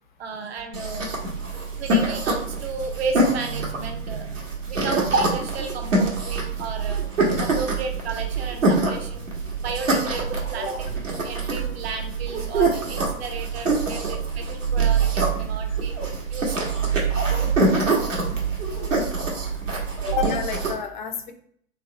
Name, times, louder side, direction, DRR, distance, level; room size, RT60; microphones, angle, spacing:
voice 1, 0.2-1.0 1.8-7.0 7.4-9.3 9.6-10.8 11.1-16.0 16.3-16.8 20.0-20.2, right 4 dB, 50° right, 4 dB, 0.7 m, -33 dB
sound 1, 0.7-20.7, right 3 dB, 65° right, 1.2 m, -25 dB
voice 2, 18.7-19.0 20.1-21.3, left 6 dB, 35° left, 6 dB, 0.4 m, -30 dB
3.4 x 2.1 x 3.7 m, 0.64 s
figure-of-eight pair, 105°, 41 cm